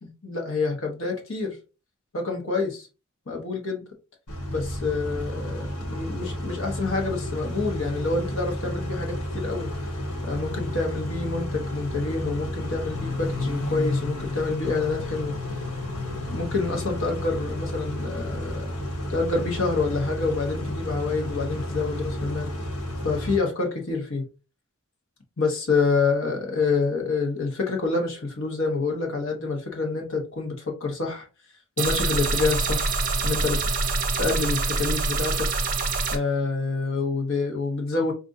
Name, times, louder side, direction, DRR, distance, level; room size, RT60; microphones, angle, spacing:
voice 1, 0.0-1.6 2.1-2.8 3.3-3.8 4.5-9.7 10.2-15.3 16.3-18.7 19.1-22.5 23.0-24.2 25.4-30.5 30.8-31.2 31.8-32.9 33.2-33.6 34.2-35.5 36.1-38.1, left 4 dB, 60° left, 1.1 m, -27 dB
Car / Idling / Accelerating revving vroom, 4.3-23.4, left 1 dB, 80° left, 1.2 m, -31 dB
sound 1, 31.8-36.2, right 3 dB, 40° right, 0.6 m, -25 dB
5.0 x 2.5 x 2.6 m
head